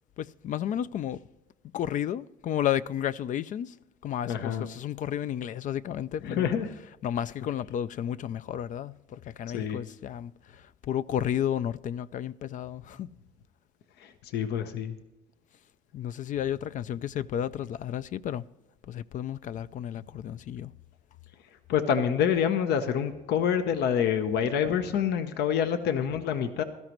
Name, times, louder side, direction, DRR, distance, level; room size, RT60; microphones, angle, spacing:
voice 1, 0.2-1.2 1.7-3.7 4.0-6.5 7.0-13.1 15.9-18.4 18.9-20.7, left 10 dB, 50° left, 0.4 m, -32 dB
voice 2, 4.3-4.7 6.2-6.7 9.5-9.8 14.0-14.9 21.7-26.6, left 8 dB, 75° left, 0.9 m, -27 dB
16.5 x 13.5 x 3.1 m
cardioid pair, 110°, 17 cm